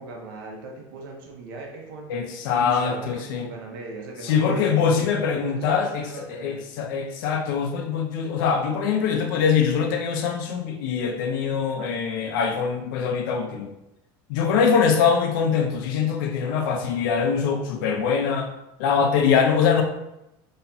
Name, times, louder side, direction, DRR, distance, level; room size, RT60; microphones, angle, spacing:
voice 1, 0.0-6.6, right 3 dB, 85° right, 0 dB, 1.1 m, -38 dB
voice 2, 2.1-3.5 4.2-13.7 14.3-18.5 18.8-19.8, left 6 dB, 75° left, 3 dB, 0.9 m, -23 dB
5.7 x 3.3 x 2.8 m, 0.89 s
supercardioid pair, 130°, 11 cm